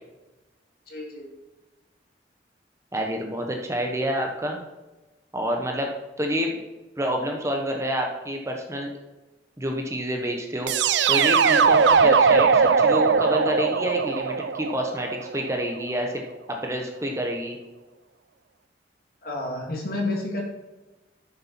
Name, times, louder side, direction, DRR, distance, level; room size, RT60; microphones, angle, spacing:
voice 1, 0.9-1.3 19.2-20.4, left 2 dB, 55° left, 0 dB, 2.4 m, -30 dB
voice 2, 2.9-4.6 5.3-5.9 6.2-6.6 7.0-8.9 9.6-10.7 11.1-16.2 16.5-17.6, equal, 15° right, 2 dB, 1.0 m, -28 dB
sound 1, 10.7-15.6, right 6 dB, 80° right, 0.5 m, -20 dB
11.5 x 7.0 x 4.3 m, 1.1 s
head